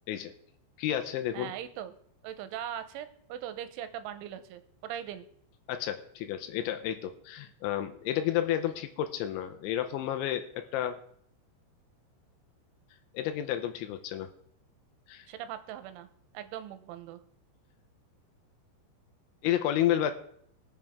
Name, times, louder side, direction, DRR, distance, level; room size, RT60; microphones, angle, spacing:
voice 1, 0.8-1.5 5.7-11.0 13.1-14.3 15.1-15.3 19.4-20.1, left 11 dB, 80° left, 8 dB, 3.0 m, -31 dB
voice 2, 1.3-1.9 2.2-5.3 15.3-16.1 16.3-17.2, right 10 dB, 85° right, 11 dB, 3.2 m, -40 dB
20.0 x 7.3 x 3.6 m, 0.66 s
omnidirectional pair, 5.6 m